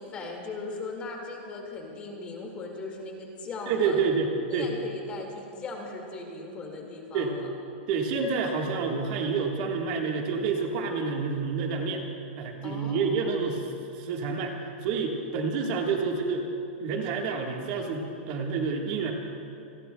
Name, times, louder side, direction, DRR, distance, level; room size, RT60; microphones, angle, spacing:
voice 1, 0.0-4.0 4.5-7.5 12.6-13.3, left 3 dB, 20° left, 1 dB, 2.0 m, -38 dB
voice 2, 3.7-4.7 7.1-7.4 7.9-12.0 12.4-16.4 16.8-19.1, right 4 dB, 35° right, 1 dB, 1.5 m, -28 dB
28.0 x 21.0 x 2.3 m, 2.6 s
supercardioid pair, 170°, 6 cm